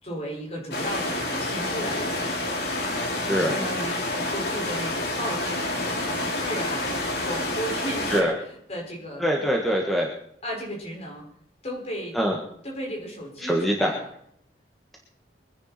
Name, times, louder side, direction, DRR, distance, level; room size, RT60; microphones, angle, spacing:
voice 1, 0.0-2.3 3.3-9.3 10.4-11.3 11.6-12.2 12.6-14.1, equal, 35° left, -2 dB, 5.3 m, -35 dB
sound 1, 0.7-8.2, left 1 dB, 65° left, 2.6 m, -28 dB
voice 2, 9.2-10.1 12.1-12.4 13.4-13.9, equal, ahead, -1 dB, 1.5 m, -23 dB
24.0 x 10.0 x 4.3 m, 0.69 s
head